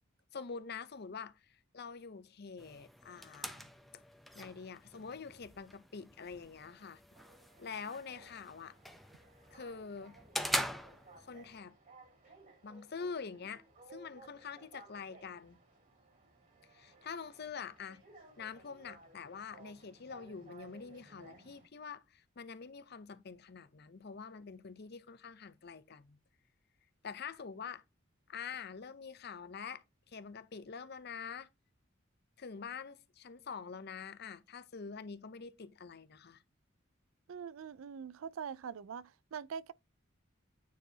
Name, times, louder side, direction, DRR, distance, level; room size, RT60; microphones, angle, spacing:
voice 1, 0.3-4.0 4.3-7.0 7.6-8.8 9.5-10.2 11.2-11.7 12.6-13.6 13.9-15.6 16.6-18.0 18.4-26.2 27.0-27.8 28.3-31.5 32.4-36.4, left 5 dB, 55° left, 0.6 m, -46 dB
sound 1, 2.6-11.6, equal, ahead, 0.6 m, -43 dB
sound 2, 7.1-21.7, right 3 dB, 45° right, 2.9 m, -59 dB
voice 2, 37.3-39.7, right 7 dB, 85° right, 0.4 m, -43 dB
9.4 x 4.5 x 2.8 m
head